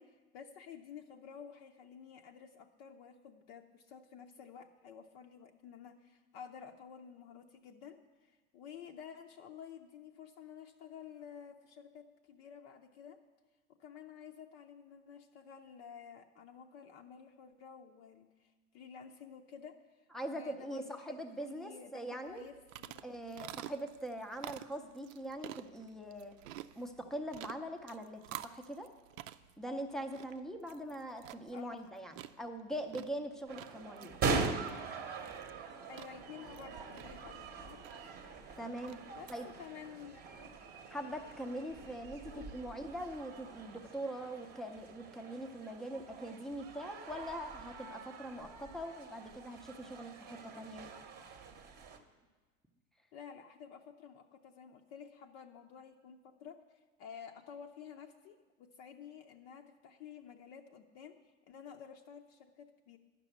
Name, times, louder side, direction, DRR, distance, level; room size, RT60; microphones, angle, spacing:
voice 1, 0.0-13.2 13.8-23.0 31.5-31.9 35.9-37.8 39.1-40.5 42.2-42.6 53.1-63.0, left 7 dB, 55° left, 3 dB, 0.6 m, -52 dB
voice 2, 20.1-22.5 23.0-26.3 26.7-28.9 29.6-34.2 38.6-39.0 39.3-39.5 40.9-50.9, right 1 dB, ahead, 5 dB, 0.5 m, -42 dB
sound 1, 22.3-39.4, right 13 dB, 80° right, 0.6 m, -51 dB
sound 2, 33.5-52.0, right 4 dB, 25° right, 0.9 m, -43 dB
11.0 x 6.0 x 7.9 m, 1.3 s
supercardioid pair, 140°, 38 cm